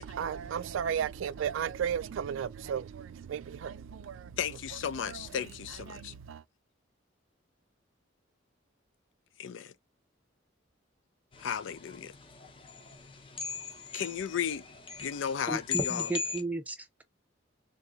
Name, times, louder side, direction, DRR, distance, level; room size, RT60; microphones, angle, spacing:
voice 1, 0.0-6.4, right 8 dB, 85° right, 0.3 m, -35 dB
voice 2, 4.4-6.1 9.4-9.7 11.4-12.1 13.9-14.6 15.0-16.1, left 8 dB, 70° left, 0.4 m, -34 dB
sound 1, 11.3-16.4, left 5 dB, 25° left, 0.7 m, -38 dB
voice 3, 15.5-17.0, right 2 dB, 10° right, 0.4 m, -35 dB
3.5 x 2.7 x 2.3 m
head